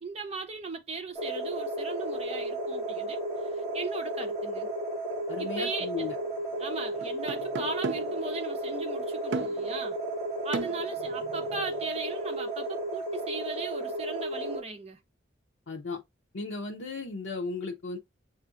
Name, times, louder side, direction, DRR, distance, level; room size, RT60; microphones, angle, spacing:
voice 1, 0.0-4.7 5.4-6.1 6.6-10.0 10.4-15.0, right 3 dB, 35° right, 0.7 m, -38 dB
sound 1, 1.1-14.6, right 1 dB, 10° left, 2.4 m, -33 dB
voice 2, 5.3-6.2 15.7-16.0 16.3-18.0, left 3 dB, 90° left, 0.6 m, -35 dB
sound 2, 6.0-6.1 7.0-8.2 9.3-9.7 10.5-11.8, right 4 dB, 65° right, 0.4 m, -36 dB
6.8 x 2.5 x 2.5 m
head